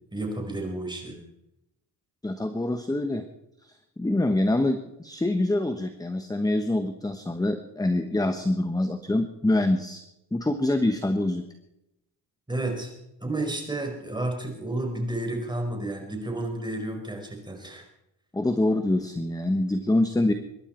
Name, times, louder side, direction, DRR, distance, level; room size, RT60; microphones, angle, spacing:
voice 1, 0.1-1.2 12.5-12.9 13.2-17.9, right 2 dB, 10° right, 2 dB, 4.7 m, -31 dB
voice 2, 2.2-3.2 3.6-10.0 10.3-11.5 18.3-20.3, left 1 dB, 10° left, 8 dB, 1.1 m, -25 dB
23.5 x 11.5 x 4.4 m, 0.86 s
cardioid pair, 95°, 39 cm